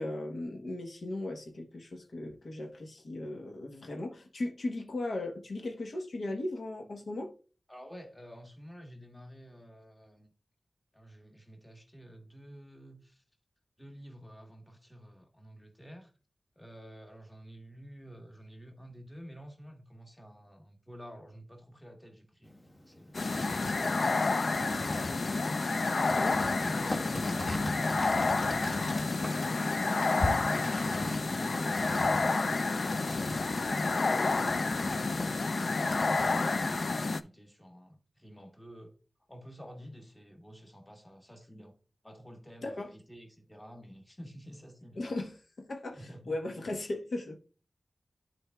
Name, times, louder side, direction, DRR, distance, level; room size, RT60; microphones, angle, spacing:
voice 1, 0.0-7.3 26.2-26.4 42.6-42.9 45.0-47.4, left 2 dB, 80° left, 1.1 m, -37 dB
voice 2, 7.7-10.3 10.9-13.2 13.8-16.1 16.5-25.6 26.1-28.8 29.2-31.0 31.3-33.3 33.8-38.9 39.3-41.7 42.0-45.1 45.9-46.4, equal, 15° left, 1.5 m, -51 dB
sound 1, 22.4-34.0 34.3-36.4, left 1 dB, 40° left, 1.5 m, -41 dB
sound 2, 23.1-37.2, left 3 dB, 65° left, 0.4 m, -29 dB
11.5 x 4.5 x 2.3 m
wide cardioid pair, 90°, 0 cm